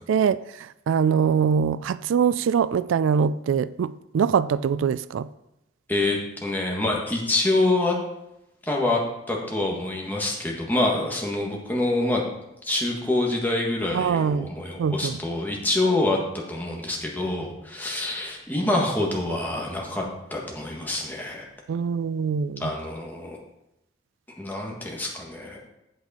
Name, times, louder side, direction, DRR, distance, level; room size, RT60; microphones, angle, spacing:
voice 1, 0.0-5.3 13.9-14.5 14.8-15.2 21.7-22.7, right 7 dB, 85° right, 16 dB, 0.3 m, -23 dB
voice 2, 5.9-8.0 8.6-9.0 9.3-12.2 12.6-16.2 16.5-20.0 20.3-21.4 22.6-23.4 24.4-25.6, left 2 dB, 10° left, -1 dB, 1.5 m, -26 dB
8.3 x 7.9 x 4.2 m, 0.87 s
head